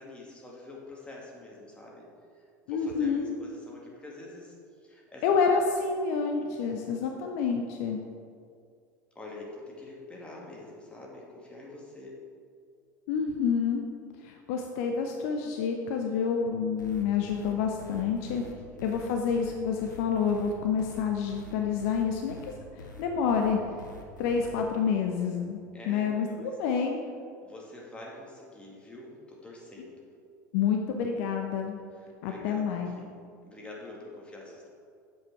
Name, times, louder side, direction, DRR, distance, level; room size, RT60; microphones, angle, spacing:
voice 1, 0.0-2.1 2.3-4.6 4.8-5.2 6.4-6.7 9.2-12.2 18.4-18.8 25.7-26.5 27.4-30.1 32.0-32.7 33.0-33.1 33.4-34.7, left 2 dB, 10° left, -3 dB, 2.1 m, -46 dB
voice 2, 2.7-3.3 5.2-8.0 13.1-13.8 14.2-18.4 18.8-22.4 22.7-23.6 24.2-25.6 25.9-27.0 30.5-31.8 32.2-32.9, left 6 dB, 50° left, 3 dB, 0.7 m, -28 dB
sound 1, 16.8-24.5, left 3 dB, 80° left, 1.0 m, -46 dB
8.1 x 7.5 x 4.6 m, 2.3 s
figure-of-eight pair, 75°, 10 cm